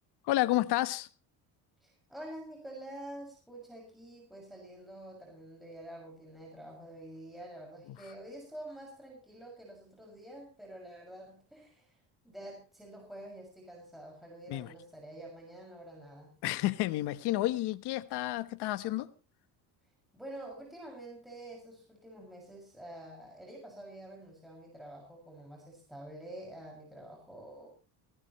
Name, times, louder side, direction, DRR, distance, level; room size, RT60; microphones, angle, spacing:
voice 1, 0.3-1.1 7.9-8.0 14.5-14.7 16.4-19.1, left 16 dB, 75° left, 1.2 m, -30 dB
voice 2, 1.8-16.3 20.1-27.7, right 1 dB, ahead, 6.2 m, -48 dB
19.0 x 18.0 x 3.2 m
cardioid pair, 110°, 40 cm